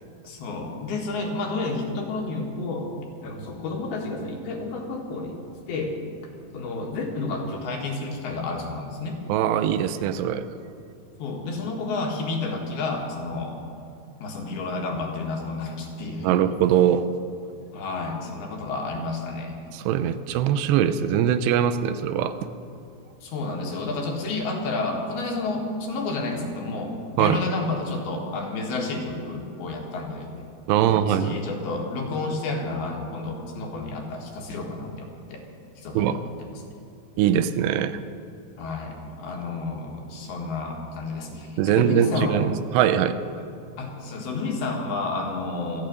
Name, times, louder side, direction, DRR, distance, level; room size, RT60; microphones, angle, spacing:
voice 1, 0.3-2.9 3.2-5.4 5.7-5.9 6.5-9.2 11.2-13.6 14.2-16.4 17.7-19.6 23.2-30.3 30.8-35.4 35.8-36.3 38.6-42.5 43.8-45.9, left 3 dB, 70° left, 1 dB, 3.5 m, -30 dB
voice 2, 9.3-10.5 16.2-17.1 19.7-22.4 27.2-27.4 30.7-31.4 35.9-36.2 37.2-38.0 41.6-43.2, right 10 dB, 85° right, 12 dB, 2.7 m, -22 dB
26.5 x 9.3 x 5.3 m, 2.8 s
omnidirectional pair, 4.8 m